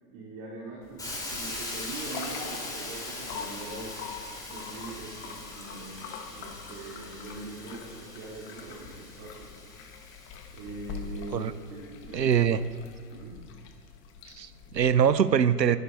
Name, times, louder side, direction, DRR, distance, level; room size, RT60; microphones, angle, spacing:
voice 1, 0.1-4.0 4.5-9.5 10.5-12.3 13.1-13.4, right 3 dB, 30° right, -5 dB, 3.5 m, -42 dB
sound 1, 0.8-15.1, left 6 dB, 25° left, 1.3 m, -44 dB
Hiss, 1.0-10.9, left 2 dB, 5° left, 3.1 m, -41 dB
voice 2, 12.1-12.6 14.3-15.8, right 8 dB, 75° right, 14 dB, 0.9 m, -23 dB
21.5 x 11.0 x 4.1 m, 2.2 s
figure-of-eight pair, 110°, 50 cm